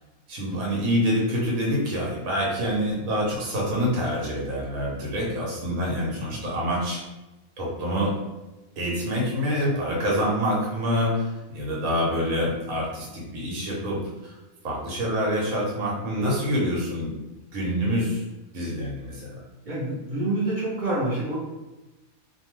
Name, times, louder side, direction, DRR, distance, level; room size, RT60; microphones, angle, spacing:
voice 1, 0.3-7.0 7.6-8.1 8.8-14.4 14.6-17.1 17.5-18.2 18.5-19.4, equal, 90° right, -3 dB, 1.2 m, -26 dB
voice 2, 19.6-21.4, right 2 dB, 50° right, -7 dB, 0.6 m, -27 dB
2.6 x 2.2 x 3.0 m, 1.1 s
omnidirectional pair, 1.4 m